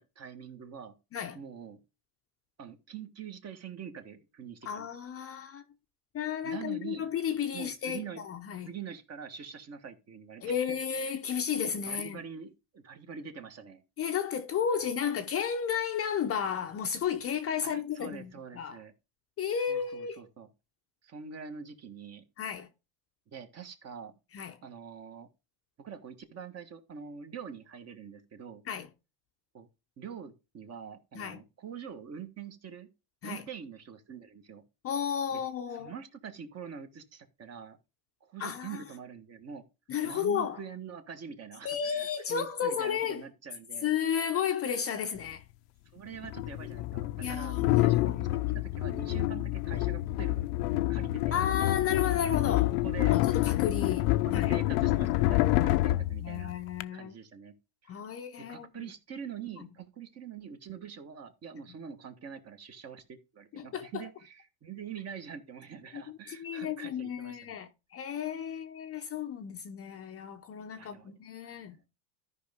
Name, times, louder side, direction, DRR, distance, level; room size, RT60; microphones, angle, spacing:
voice 1, 0.1-0.9 1.3-1.8 2.6-4.9 6.4-7.1 7.5-8.2 8.7-10.8 11.0-11.1 11.7-13.8 17.7-18.9 19.7-20.5 21.0-22.2 23.3-24.2 24.6-25.3 25.8-28.6 29.5-29.7 30.0-32.9 33.2-34.6 35.3-35.4 35.7-37.8 38.2-39.6 40.0-43.9 45.9-48.3 48.5-50.5 50.9-51.4 52.8-53.1 54.2-56.5 56.9-57.5 57.8-58.0 58.4-67.6 70.8-71.8, right 7 dB, 30° right, 1.5 m, -45 dB
voice 2, 4.7-5.6 6.1-8.7 10.4-12.2 14.0-18.8 19.4-20.3 22.4-22.7 24.3-24.6 28.7-28.9 31.1-31.4 33.2-33.4 34.8-35.9 38.4-38.8 39.9-40.6 41.6-43.2 43.8-45.4 47.2-48.1 51.3-52.8 53.1-54.6 55.4-55.6 56.2-57.1 57.9-58.9 59.6-59.7 63.5-64.0 65.9-71.8, left 8 dB, 30° left, 0.7 m, -33 dB
sound 1, 45.2-45.3 46.2-56.8, left 17 dB, 75° left, 0.7 m, -28 dB
13.0 x 5.4 x 3.6 m
supercardioid pair, 140°, 48 cm